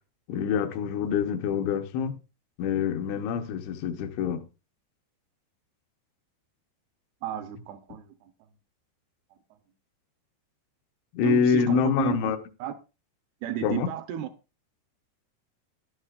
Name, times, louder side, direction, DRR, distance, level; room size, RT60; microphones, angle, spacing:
voice 1, 0.3-2.2 2.6-4.4 11.1-12.4 13.6-13.9, left 7 dB, 80° left, 3.3 m, -26 dB
voice 2, 7.2-8.3 11.2-12.3 12.6-12.7 13.4-14.3, right 12 dB, 80° right, 2.4 m, -32 dB
13.0 x 11.5 x 2.4 m
omnidirectional pair, 5.3 m